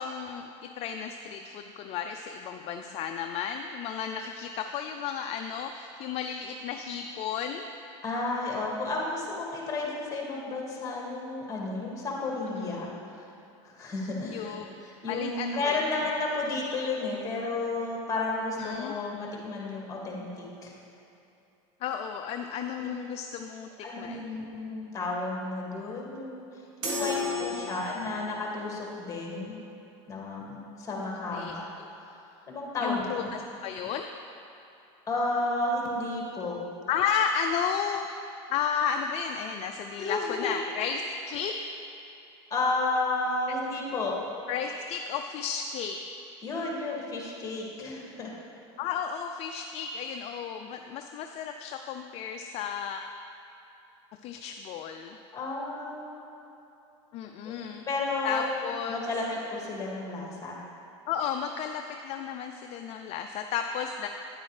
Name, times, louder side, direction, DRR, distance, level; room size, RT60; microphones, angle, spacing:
voice 1, 0.0-7.7 12.5-12.8 14.2-14.8 15.1-15.8 18.6-18.9 21.8-23.7 24.0-24.4 27.0-27.8 31.3-31.9 32.8-34.1 36.9-38.2 38.5-41.0 41.3-41.6 44.5-46.0 48.8-53.1 54.2-55.2 57.1-57.8 58.2-59.1 61.1-64.1, left 7 dB, 45° left, 5 dB, 0.4 m, -33 dB
voice 2, 8.0-12.9 13.6-20.7 22.8-23.0 23.8-26.4 26.8-29.5 30.1-31.6 32.5-33.0 35.1-36.6 40.0-40.6 42.5-44.1 46.4-48.3 55.3-56.4 57.4-58.5 58.9-60.6, left 2 dB, 20° left, -3 dB, 2.1 m, -32 dB
sound 1, 26.8-28.3, left 3 dB, 75° right, 1.8 m, -33 dB
9.4 x 8.7 x 3.3 m, 2.8 s
supercardioid pair, 115°, 15 cm